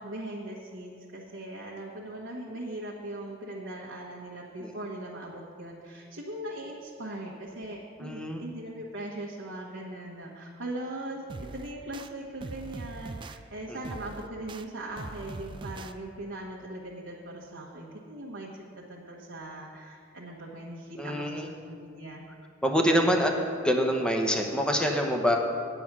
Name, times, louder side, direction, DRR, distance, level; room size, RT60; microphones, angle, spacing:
voice 1, 0.0-22.2, right 1 dB, 80° right, -4 dB, 1.3 m, -40 dB
voice 2, 8.0-8.4 13.7-13.8 21.0-21.5 22.6-23.3 23.6-25.4, equal, 5° left, 2 dB, 0.9 m, -25 dB
sound 1, 11.3-12.1 12.4-13.4 13.8-14.6 15.0-15.9, right 3 dB, 25° right, 0.3 m, -41 dB
9.3 x 7.9 x 6.0 m, 2.2 s
head